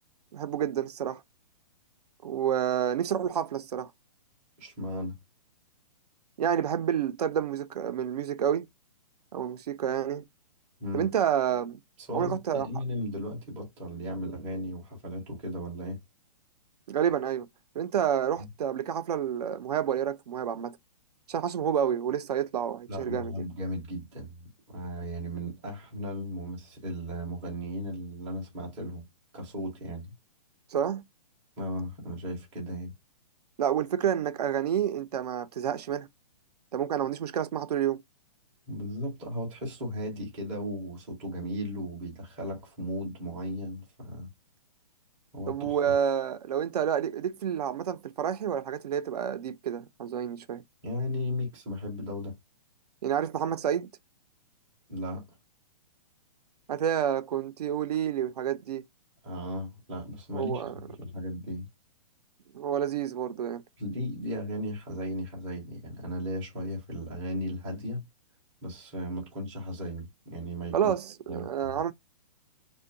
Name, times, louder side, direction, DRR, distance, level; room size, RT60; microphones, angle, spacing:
voice 1, 0.3-1.2 2.2-3.9 6.4-8.7 9.3-10.2 10.9-11.8 12.1-12.7 16.9-17.5 17.8-20.8 21.3-23.4 30.7-31.0 33.6-36.1 36.7-38.0 45.5-50.6 53.0-53.9 56.7-58.8 60.3-60.7 62.5-63.6 70.7-71.9, right 9 dB, 75° right, 0.5 m, -29 dB
voice 2, 4.6-5.2 10.8-11.1 12.0-16.0 18.4-18.5 22.9-29.0 29.3-30.1 31.6-32.9 38.7-44.3 45.3-45.9 50.8-52.4 54.9-55.2 59.2-61.7 63.8-68.0 68.6-70.9 71.3-71.8, equal, 10° right, 0.4 m, -36 dB
2.6 x 2.1 x 2.5 m
hypercardioid pair, 175°, 20 cm